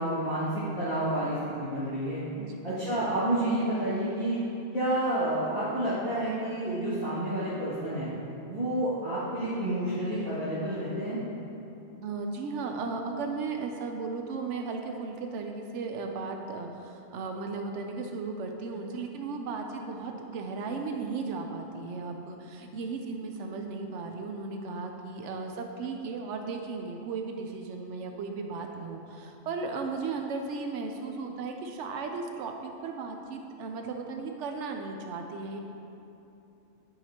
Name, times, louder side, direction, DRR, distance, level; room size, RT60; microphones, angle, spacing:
voice 1, 0.0-2.2 2.6-4.4 4.7-8.1 8.5-11.2, right 1 dB, 35° right, -15 dB, 2.0 m, -29 dB
voice 2, 2.4-3.0 12.0-35.6, right 4 dB, 90° right, 3 dB, 0.9 m, -36 dB
12.0 x 5.7 x 2.9 m, 2.9 s
omnidirectional pair, 1.2 m